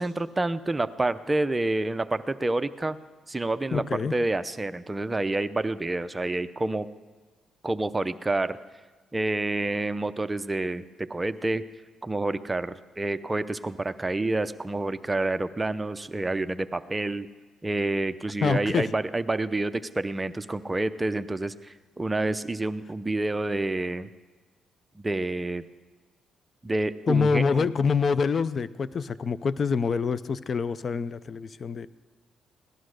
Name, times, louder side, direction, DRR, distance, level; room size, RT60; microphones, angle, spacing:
voice 1, 0.0-3.0 3.3-3.8 4.1-6.9 7.6-8.6 9.1-11.6 12.0-17.3 17.6-24.1 25.0-25.6 26.6-27.7, right 2 dB, 20° right, 12 dB, 0.6 m, -28 dB
voice 2, 3.7-4.1 18.4-18.9 27.1-31.9, left 5 dB, 45° left, 16 dB, 0.5 m, -26 dB
18.0 x 11.5 x 6.4 m, 1.3 s
cardioid pair, 90°, 0 cm